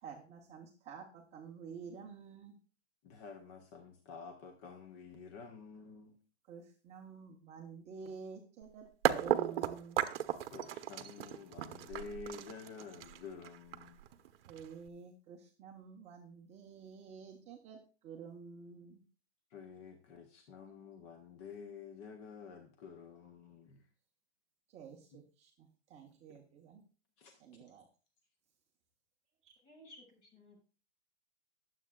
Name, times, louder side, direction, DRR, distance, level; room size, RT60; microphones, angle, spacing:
voice 1, 0.0-2.5 6.5-10.0 14.5-17.8 18.0-19.0 24.7-26.8 27.4-27.8 29.4-29.6, right 6 dB, 20° right, 0 dB, 0.8 m, -50 dB
voice 2, 3.0-6.2 10.5-14.0 19.5-23.8 26.3-26.4 27.2-27.4, left 5 dB, 15° left, 5 dB, 0.4 m, -50 dB
sound 1, 8.6-8.7 9.0-14.9, right 11 dB, 55° right, 0.9 m, -35 dB
voice 3, 29.6-30.6, left 1 dB, 35° left, 0 dB, 6.5 m, -57 dB
19.0 x 7.5 x 2.3 m, 0.37 s
hypercardioid pair, 155°, 35 cm